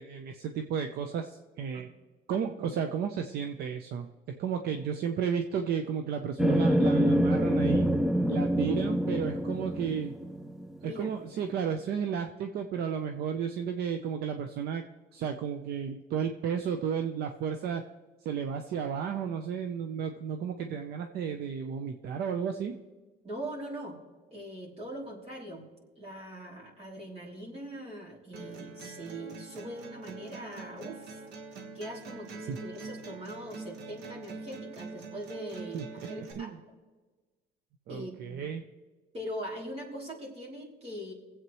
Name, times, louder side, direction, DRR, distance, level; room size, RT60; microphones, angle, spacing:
voice 1, 0.0-1.9 2.3-4.1 4.4-7.9 8.3-10.1 10.8-14.8 15.1-17.8 18.2-22.7 32.5-32.6 35.7-35.8 36.4-36.6 37.9-38.6, right 7 dB, 70° right, 6 dB, 0.7 m, -33 dB
sound 1, 6.4-10.9, equal, 5° right, 0.4 m, -26 dB
voice 2, 23.2-24.0 24.3-25.6 26.0-31.2 31.7-36.6 37.9-38.4 39.1-41.1, right 1 dB, 35° right, -3 dB, 2.9 m, -41 dB
sound 2, 28.3-36.3, right 3 dB, 90° right, 1.5 m, -44 dB
23.0 x 8.1 x 3.1 m, 1.3 s
cardioid pair, 110°, 17 cm